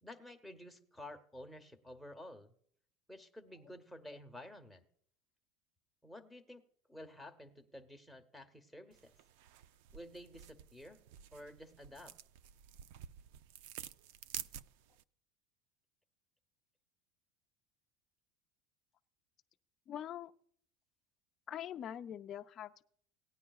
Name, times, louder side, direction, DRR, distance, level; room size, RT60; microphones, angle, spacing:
voice 1, 0.0-2.5 3.1-4.8 6.0-6.6 6.9-9.1 9.9-11.0 11.3-12.1, left 1 dB, ahead, 4 dB, 0.9 m, -52 dB
sound 1, 8.9-15.0, right 10 dB, 75° right, 0.3 m, -50 dB
voice 2, 19.9-20.3 21.5-22.8, left 10 dB, 35° left, 3 dB, 0.5 m, -43 dB
18.5 x 9.8 x 2.4 m, 0.63 s
supercardioid pair, 125°, 0 cm